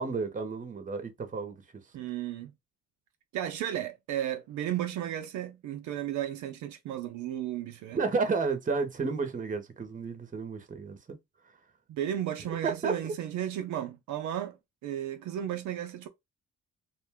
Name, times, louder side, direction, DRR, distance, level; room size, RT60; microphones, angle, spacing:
voice 1, 0.0-1.5 7.9-11.2 12.6-13.1, right 4 dB, 25° right, 0.7 m, -31 dB
voice 2, 1.9-2.5 3.3-8.0 11.9-14.6 14.8-16.1, right 11 dB, 75° right, 0.5 m, -34 dB
2.5 x 2.2 x 3.3 m
cardioid pair, 90°, 30 cm